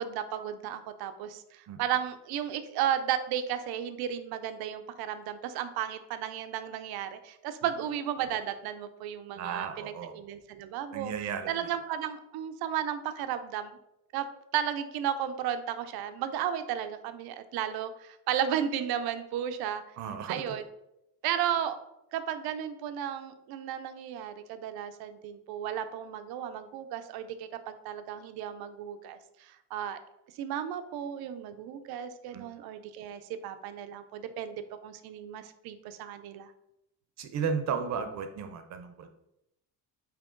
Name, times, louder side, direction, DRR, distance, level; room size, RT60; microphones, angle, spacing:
voice 1, 0.0-11.1 11.5-13.8 14.1-14.3 14.5-19.8 20.3-20.6 21.2-21.8 22.1-30.0 30.4-36.5, right 9 dB, 85° right, 9 dB, 0.7 m, -34 dB
voice 2, 9.3-10.1 10.9-11.7 20.0-20.5 32.3-32.5 37.2-39.1, right 6 dB, 50° right, 7 dB, 0.6 m, -34 dB
8.8 x 3.0 x 3.8 m, 0.84 s
cardioid pair, 180°, 37 cm